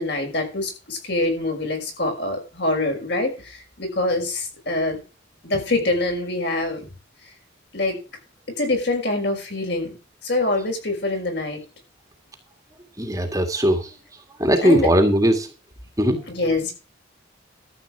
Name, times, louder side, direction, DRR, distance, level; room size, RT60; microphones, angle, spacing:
voice 1, 0.0-5.0 5.4-6.9 7.7-8.0 8.6-10.0 10.2-11.6 14.6-14.9 16.3-16.7, left 2 dB, 60° left, 3 dB, 5.8 m, -25 dB
voice 2, 13.0-13.8 14.4-15.5 16.0-16.2, equal, 15° right, 6 dB, 1.8 m, -19 dB
13.0 x 8.0 x 4.8 m, 0.32 s
head